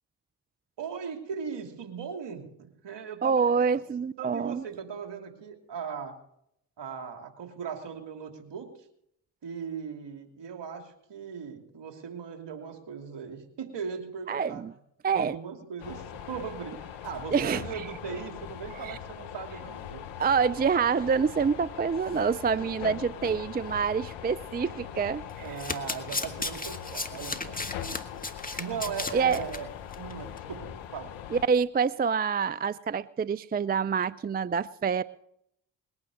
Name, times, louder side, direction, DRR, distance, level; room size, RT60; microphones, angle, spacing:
voice 1, 0.8-3.8 4.2-6.2 6.8-8.7 9.4-14.6 15.1-20.0 25.4-27.6 27.9-28.0 28.6-29.7 30.0-31.1, right 6 dB, 60° right, 4 dB, 3.0 m, -38 dB
voice 2, 3.2-4.6 14.3-14.7 15.0-15.3 17.3-17.8 18.8-19.0 20.2-25.6 29.1-29.4 31.3-35.0, right 6 dB, 20° right, 17 dB, 0.5 m, -27 dB
sound 1, 15.8-31.5, left 10 dB, 75° left, 1.1 m, -41 dB
Domestic sounds home sounds, 25.3-29.6 29.9-30.1 30.4-30.5, left 3 dB, 20° left, 1.9 m, -35 dB
20.5 x 9.6 x 6.4 m, 0.75 s
hypercardioid pair, 45°, 47 cm